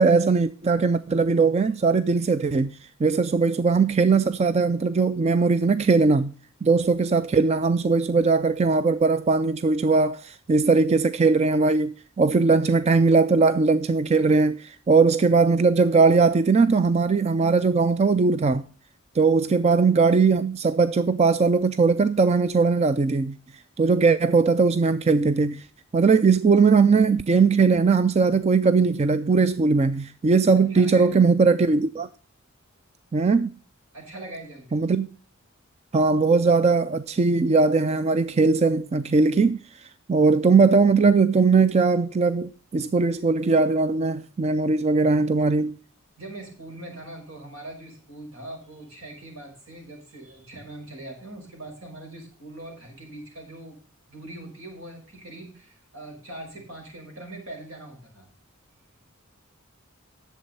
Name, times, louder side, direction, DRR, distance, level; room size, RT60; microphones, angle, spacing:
voice 1, 0.0-6.3 6.6-18.6 19.1-23.4 23.8-25.7 25.9-32.1 33.1-33.5 34.7-35.1 35.9-45.8, right 4 dB, 30° right, 0.4 m, -20 dB
voice 2, 30.7-31.3 33.9-34.8 46.2-53.8 54.1-58.3, right 1 dB, 75° right, 6.0 m, -41 dB
11.0 x 7.4 x 5.5 m
head